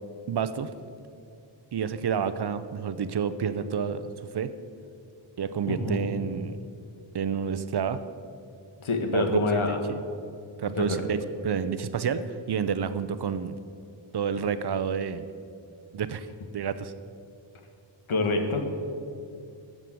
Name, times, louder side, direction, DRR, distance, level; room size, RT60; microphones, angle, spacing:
voice 1, 0.3-0.7 1.7-4.5 5.4-6.6 7.1-8.0 9.1-10.0 10.6-13.6 14.1-15.3 15.9-16.3 16.5-16.9, right 7 dB, 55° right, 12 dB, 0.7 m, -29 dB
voice 2, 5.7-6.0 8.8-9.8 10.8-11.0 18.1-18.6, left 2 dB, 80° left, 4 dB, 1.8 m, -26 dB
14.5 x 7.4 x 7.7 m, 2.5 s
wide cardioid pair, 165°, 48 cm